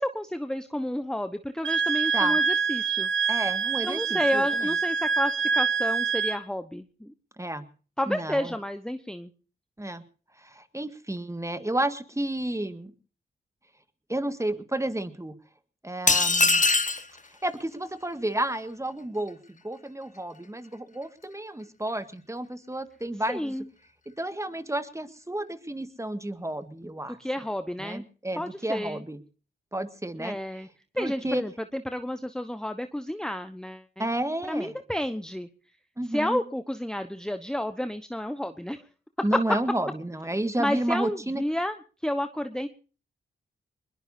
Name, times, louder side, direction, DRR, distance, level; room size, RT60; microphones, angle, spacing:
voice 1, 0.0-3.1 3.8-7.1 8.0-9.3 23.3-23.7 27.2-28.1 28.4-29.0 30.2-30.7 30.9-34.1 34.5-35.5 36.0-38.8 40.6-41.8 42.0-42.7, left 1 dB, 5° left, 10 dB, 1.1 m, -31 dB
Wind instrument woodwind instrument, 1.6-6.4, right 5 dB, 65° right, 1.6 m, -25 dB
voice 2, 3.3-4.7 7.4-7.6 8.1-8.5 9.8-10.0 10.4-12.9 14.1-15.3 15.8-16.6 17.4-23.5 24.2-27.2 27.8-29.2 29.7-30.4 31.0-31.4 34.0-34.7 36.0-36.4 39.2-41.4, right 1 dB, 15° right, 10 dB, 1.9 m, -31 dB
sound 1, 16.1-17.1, left 3 dB, 35° left, 1.7 m, -21 dB
21.5 x 21.5 x 2.7 m, 0.38 s
supercardioid pair, 40°, 21 cm